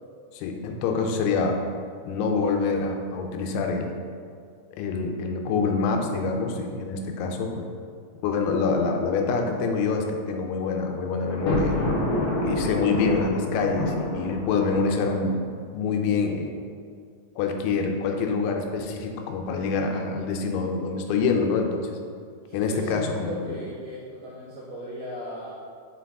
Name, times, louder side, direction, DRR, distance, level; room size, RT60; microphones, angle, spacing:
voice 1, 0.3-1.6 2.1-3.9 4.8-7.7 8.2-15.4 15.7-16.5 17.4-21.9 22.5-23.6, left 4 dB, 90° left, 3 dB, 3.0 m, -26 dB
Thunder, 11.3-15.4, left 2 dB, 60° left, 1.9 m, -28 dB
voice 2, 22.5-25.5, equal, 80° right, -7 dB, 2.1 m, -37 dB
7.0 x 4.6 x 3.5 m, 2.1 s
omnidirectional pair, 5.2 m